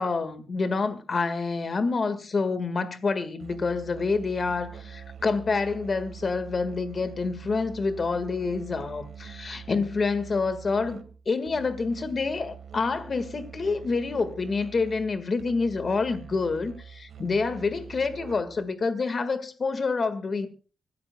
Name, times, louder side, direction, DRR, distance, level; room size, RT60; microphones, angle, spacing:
voice 1, 0.0-20.5, left 4 dB, 40° left, 1.7 m, -27 dB
Musical instrument, 3.4-18.7, right 8 dB, 85° right, 1.5 m, -45 dB
25.5 x 13.5 x 2.3 m
wide cardioid pair, 130°, 0 cm